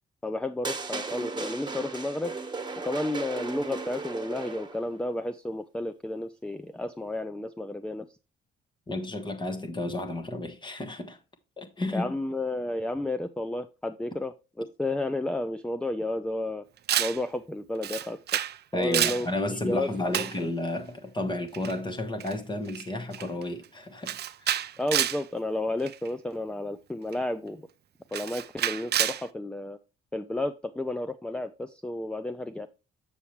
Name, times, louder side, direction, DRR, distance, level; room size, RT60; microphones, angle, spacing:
voice 1, 0.2-2.3 2.8-8.1 11.9-16.6 17.0-18.2 18.7-20.5 24.8-27.7 28.1-29.8 30.1-32.7, left 1 dB, 5° left, 0.4 m, -32 dB
sound 1, 0.6-4.9, right 4 dB, 20° right, 1.3 m, -36 dB
voice 2, 8.9-11.2 11.6-12.1 18.7-24.6, left 1 dB, 25° left, 1.4 m, -32 dB
Camera, 16.9-17.2 17.8-18.6 18.8-19.3 20.1-20.4 21.5-21.7 22.2-22.3 22.7-22.9 23.1-23.4 24.1-25.2 25.9-26.1 27.1-27.2 28.1-29.2, right 11 dB, 55° right, 0.5 m, -28 dB
7.1 x 6.9 x 3.2 m
cardioid pair, 90°, 20 cm